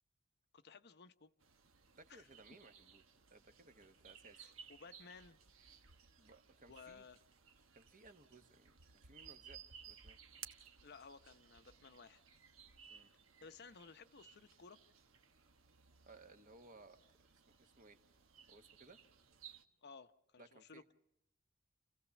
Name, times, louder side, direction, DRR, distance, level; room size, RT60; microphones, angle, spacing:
voice 1, 0.5-1.3 2.1-2.3 4.3-5.4 6.7-7.2 10.8-12.2 13.4-14.8 19.8-20.9, left 5 dB, 55° left, 0.8 m, -57 dB
sound 1, 1.4-19.6, right 7 dB, 85° right, 1.2 m, -60 dB
voice 2, 1.9-3.0 3.3-4.5 6.2-7.0 7.7-10.2 12.9-13.1 16.0-17.0 17.3-18.0 18.5-19.0 20.4-20.8, right 2 dB, 40° right, 1.3 m, -62 dB
29.5 x 15.5 x 7.1 m
head